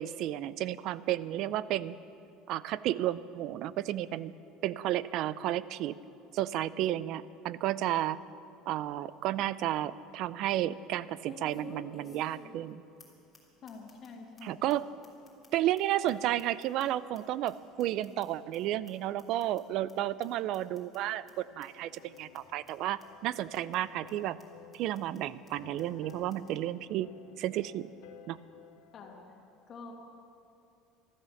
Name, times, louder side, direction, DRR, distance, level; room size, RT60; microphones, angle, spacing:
voice 1, 0.0-2.0 2.5-4.3 4.6-5.9 6.3-8.2 8.7-12.8 14.4-14.8 15.5-24.4 24.7-27.1 27.4-27.9 28.3-28.4, right 13 dB, 55° right, 17 dB, 0.4 m, -32 dB
sound 1, 8.9-9.0 9.4-9.5 11.2-12.7 13.0-13.1 13.3-13.4 13.7-14.1 14.4-14.5 14.7-14.8 15.0-17.2 17.4-18.6 18.8-18.9 19.2-19.6 19.9-20.0 20.2-20.3 20.5-21.0 21.3-21.4 21.6-21.7 21.9-22.4 22.7-22.8 23.0-23.1 23.3-23.8 24.1-24.2 24.4-24.5 24.7-25.2 25.5-25.6 25.8-25.9 26.1-26.5, left 2 dB, 15° left, 3.2 m, -52 dB
voice 2, 13.6-14.7 28.9-29.2 29.7-29.9, left 4 dB, 35° left, 0 dB, 2.5 m, -47 dB
sound 2, 19.9-29.3, left 9 dB, 70° left, 1.3 m, -56 dB
14.5 x 13.5 x 7.1 m, 2.6 s
cardioid pair, 145°, 0 cm